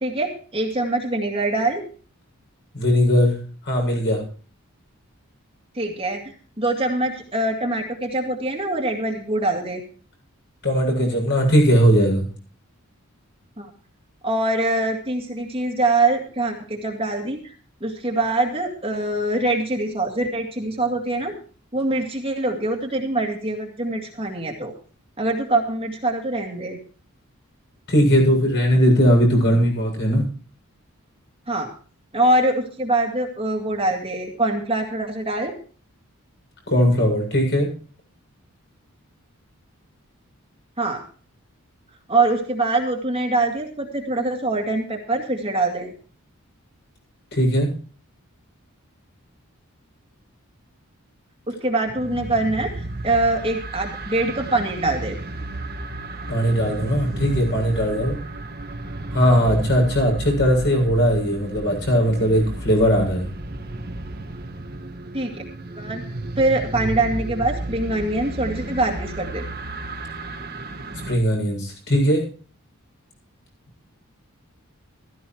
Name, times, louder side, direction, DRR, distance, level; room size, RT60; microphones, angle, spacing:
voice 1, 0.0-1.9 5.7-9.8 13.6-13.7 14.2-17.5 17.8-21.4 21.7-24.7 25.2-26.8 31.5-31.7 32.1-35.5 40.8-41.0 42.1-45.9 51.5-55.2 65.1-65.4 65.7-66.0 66.4-69.5, right 2 dB, 25° right, 2 dB, 2.1 m, -24 dB
voice 2, 2.7-3.4 3.6-4.2 10.6-12.3 27.9-30.2 36.7-37.7 47.3-47.7 56.3-58.2 59.1-63.3 71.1-72.3, equal, 50° left, 1 dB, 7.5 m, -19 dB
sound 1, 51.9-71.2, right 2 dB, 45° right, 1.5 m, -33 dB
15.5 x 15.0 x 3.1 m, 0.40 s
head